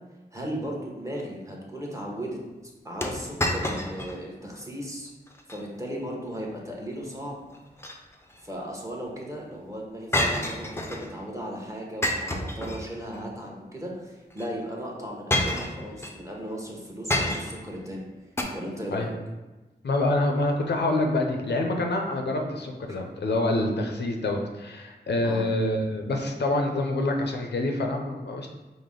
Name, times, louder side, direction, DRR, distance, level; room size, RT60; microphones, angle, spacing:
voice 1, 0.3-2.4 2.8-5.1 5.5-7.5 8.4-18.0 18.5-19.1 25.2-25.4, equal, 20° right, -2 dB, 0.9 m, -36 dB
sound 1, 3.0-4.2 4.6-4.7 5.3-5.6 7.5-8.4 10.1-11.1 12.0-13.2 14.3-14.5 15.3-16.2 17.1-17.7 18.4-18.5, left 1 dB, 15° left, 0.5 m, -28 dB
voice 2, 19.8-28.5, left 2 dB, 85° left, 3 dB, 0.5 m, -26 dB
5.0 x 2.1 x 3.7 m, 1.1 s
wide cardioid pair, 75°, 17 cm